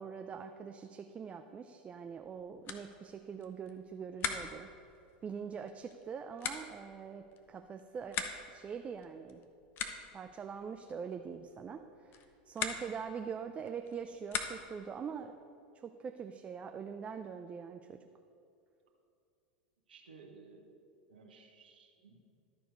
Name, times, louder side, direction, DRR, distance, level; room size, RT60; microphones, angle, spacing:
voice 1, 0.0-4.7 5.2-9.4 10.1-12.2 12.5-15.4 15.8-18.0, right 6 dB, 25° right, 6 dB, 0.4 m, -43 dB
sound 1, 2.1-14.9, left 7 dB, 45° left, 0.8 m, -44 dB
voice 2, 19.9-20.7 21.1-22.4, right 4 dB, 90° right, 1 dB, 1.2 m, -57 dB
12.5 x 4.6 x 5.2 m, 2.6 s
hypercardioid pair, 95°, 5 cm